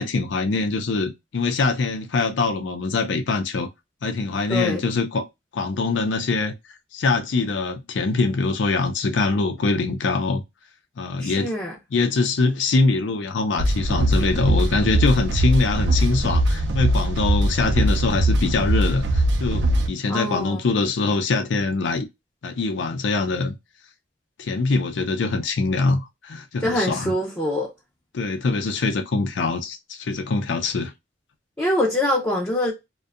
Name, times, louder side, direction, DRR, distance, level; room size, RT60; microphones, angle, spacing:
voice 1, 0.0-3.7 4.0-5.3 5.5-6.5 6.9-10.4 11.0-11.5 11.9-22.1 22.4-23.6 24.4-27.1 28.1-30.9, left 3 dB, 80° left, 0.4 m, -23 dB
voice 2, 4.5-4.8 11.2-11.8 20.1-20.7 26.6-27.7 31.6-32.7, left 1 dB, 15° left, 0.5 m, -24 dB
sound 1, 13.6-19.9, right 1 dB, 70° right, 0.5 m, -21 dB
2.6 x 2.1 x 2.3 m
head